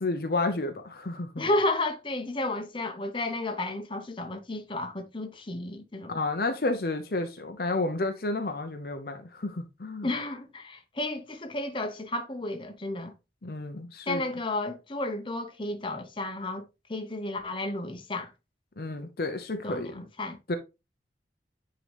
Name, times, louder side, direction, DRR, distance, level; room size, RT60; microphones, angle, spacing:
voice 1, 0.0-1.5 6.1-10.1 13.4-14.2 18.8-19.9 20.5-20.6, left 2 dB, 55° left, 0.7 m, -31 dB
voice 2, 1.4-6.2 10.0-13.1 14.1-16.6 16.9-18.3 19.6-20.4, left 2 dB, 30° left, 0.9 m, -32 dB
9.2 x 3.8 x 3.4 m
head